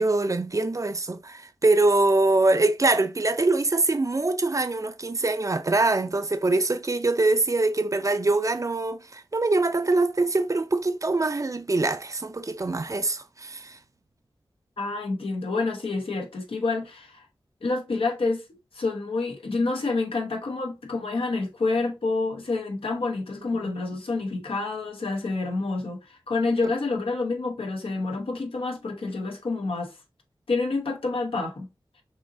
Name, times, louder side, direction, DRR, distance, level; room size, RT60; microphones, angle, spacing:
voice 1, 0.0-13.8, right 2 dB, 35° right, 0.5 m, -23 dB
voice 2, 14.8-17.3 17.6-29.9 30.5-31.7, left 3 dB, 80° left, 1.0 m, -28 dB
5.4 x 2.9 x 2.6 m
wide cardioid pair, 65°, 9 cm